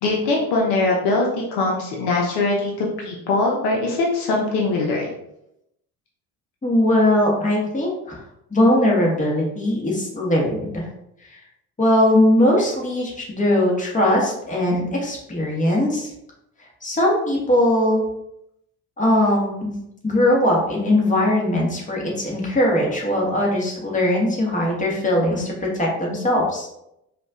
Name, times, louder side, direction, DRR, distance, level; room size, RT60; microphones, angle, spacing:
voice 1, 0.0-5.1, left 2 dB, 60° left, -2 dB, 0.9 m, -22 dB
voice 2, 6.6-8.2 8.5-10.9 11.3-11.4 11.8-16.1 16.8-18.0 19.0-19.7 20.0-26.7, left 1 dB, 15° left, -3 dB, 1.4 m, -20 dB
4.9 x 2.5 x 2.4 m, 0.81 s
figure-of-eight pair, 55°, 45 cm